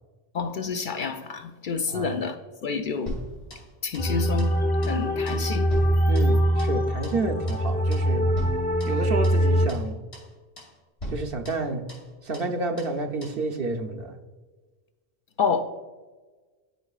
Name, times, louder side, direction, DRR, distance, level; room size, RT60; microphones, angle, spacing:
voice 1, 0.3-2.4 2.6-3.1 3.8-4.6 4.9-5.7 15.4-15.6, left 5 dB, 60° left, 0.6 m, -28 dB
sound 1, 3.1-4.1 4.4-4.6 4.8-5.0 5.3-6.8 7.0-7.2 7.5-7.7 7.9-8.1 8.3-9.4 9.7-9.9 10.1-10.3 10.6-10.7 11.0-12.1 12.3-12.5 12.8-13.0 13.2-13.4, equal, 85° left, 2.8 m, -39 dB
sound 2, 4.0-9.7, equal, 10° left, 0.6 m, -23 dB
voice 2, 6.1-8.3 8.9-10.0 11.1-11.9 12.2-14.2, right 3 dB, 65° right, 0.9 m, -30 dB
13.5 x 4.8 x 2.4 m
omnidirectional pair, 1.1 m